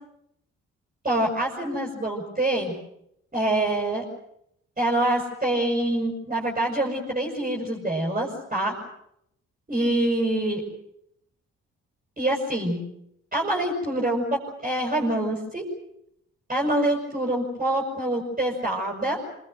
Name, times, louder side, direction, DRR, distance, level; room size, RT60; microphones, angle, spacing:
voice 1, 1.0-2.7 3.3-4.1 4.8-8.7 9.7-10.6 12.2-12.8 13.3-15.6 16.5-19.2, right 1 dB, 20° right, -1 dB, 7.0 m, -25 dB
27.0 x 21.5 x 8.0 m, 0.76 s
figure-of-eight pair, 40°, 37 cm